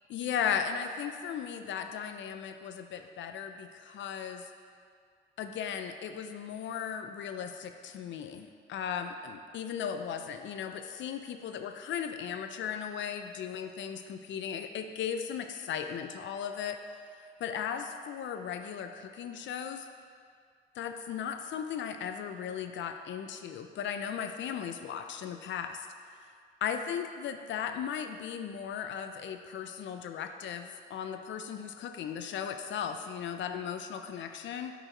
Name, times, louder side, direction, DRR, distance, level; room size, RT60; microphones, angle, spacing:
voice 1, 0.1-4.5 5.4-19.9 20.8-26.3 26.6-34.7, left 8 dB, 70° left, 7 dB, 0.5 m, -37 dB
8.8 x 5.0 x 3.8 m, 2.1 s
cardioid pair, 90°, 20 cm